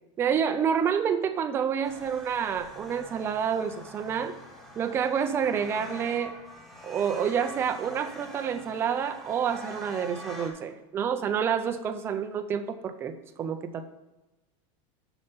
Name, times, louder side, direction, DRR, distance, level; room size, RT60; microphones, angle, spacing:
voice 1, 0.2-4.3 4.8-6.4 6.8-13.8, right 7 dB, 15° right, 8 dB, 0.4 m, -28 dB
sound 1, 1.8-10.5, equal, ahead, 0.9 m, -45 dB
6.9 x 5.4 x 5.5 m, 1.0 s
supercardioid pair, 175°, 16 cm